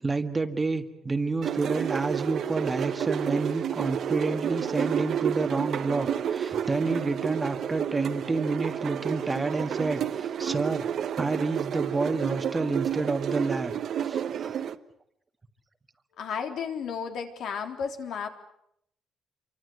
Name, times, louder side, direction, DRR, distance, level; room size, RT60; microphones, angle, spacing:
voice 1, 0.0-10.9 11.2-13.7 14.0-14.5, right 3 dB, 15° right, 7 dB, 1.7 m, -29 dB
sound 1, 1.4-14.7, right 9 dB, 55° right, 1.2 m, -30 dB
voice 2, 16.2-18.3, left 6 dB, 70° left, 5 dB, 3.6 m, -33 dB
28.5 x 24.5 x 8.0 m, 0.73 s
cardioid pair, 155°, 0 cm